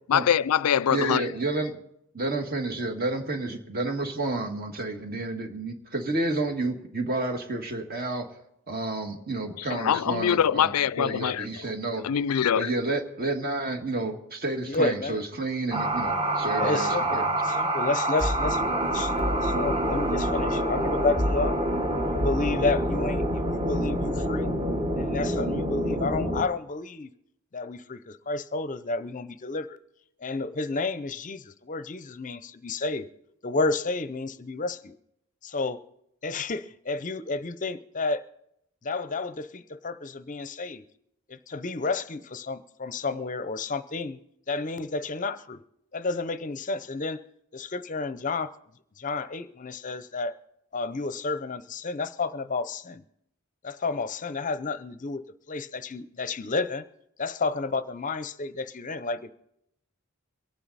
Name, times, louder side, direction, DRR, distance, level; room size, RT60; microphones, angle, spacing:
voice 1, 0.1-1.3 9.6-11.7 12.0-12.7, left 8 dB, 85° left, 0.4 m, -24 dB
voice 2, 0.9-1.7 2.2-8.4 8.7-10.7 11.0-12.1 12.6-17.3, right 2 dB, 45° right, 1.8 m, -30 dB
voice 3, 14.6-15.2 16.4-21.6 22.0-24.5 24.9-27.1 27.5-29.8 30.2-33.1 33.4-35.0 35.4-35.8 36.2-38.2 38.8-40.8 41.3-44.2 44.5-45.6 45.9-47.2 47.5-48.5 49.0-50.4 50.7-53.0 53.6-56.8 57.2-59.3, left 3 dB, 35° left, 0.6 m, -31 dB
sound 1, 15.7-26.4, right 1 dB, 25° right, 1.3 m, -26 dB
24.0 x 9.2 x 4.1 m
head